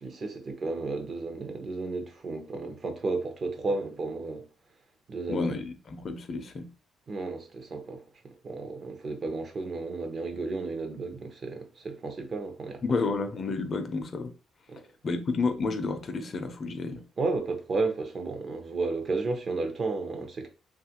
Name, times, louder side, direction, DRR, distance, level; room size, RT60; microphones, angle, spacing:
voice 1, 0.0-4.4 5.1-5.5 7.1-8.0 8.4-12.8 14.7-14.8 17.2-20.5, right 3 dB, 45° right, 0.7 m, -33 dB
voice 2, 5.3-6.7 12.8-14.3 15.0-17.0, left 4 dB, 45° left, 0.5 m, -30 dB
2.8 x 2.4 x 2.8 m
cardioid pair, 90°, 0 cm